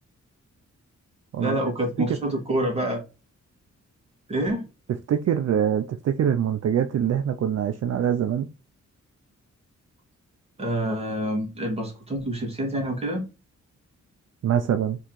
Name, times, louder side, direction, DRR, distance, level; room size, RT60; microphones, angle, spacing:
voice 1, 1.4-3.0 4.3-4.6 10.6-13.2, right 1 dB, 20° right, 2.2 m, -27 dB
voice 2, 5.1-8.5 14.4-15.0, right 9 dB, 60° right, 0.5 m, -24 dB
4.6 x 3.5 x 3.1 m
wide cardioid pair, 125°, 30 cm